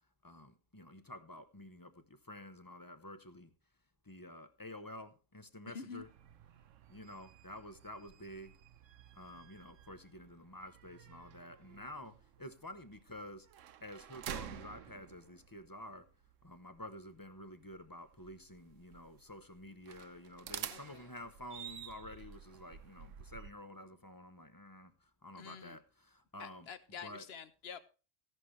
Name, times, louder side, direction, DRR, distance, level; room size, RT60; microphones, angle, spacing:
voice 1, 0.2-3.5 4.0-6.1 6.9-8.6 9.1-13.5 13.8-16.0 16.4-26.7 27.0-27.2, left 1 dB, 20° left, 11 dB, 0.8 m, -50 dB
voice 2, 5.7-6.0 20.7-21.1 25.3-25.8 26.4-27.8, left 6 dB, 55° left, 13 dB, 1.2 m, -48 dB
sound 1, 6.0-23.5, right 9 dB, 80° right, 1.1 m, -51 dB
15.0 x 11.0 x 3.2 m, 0.34 s
omnidirectional pair, 1.3 m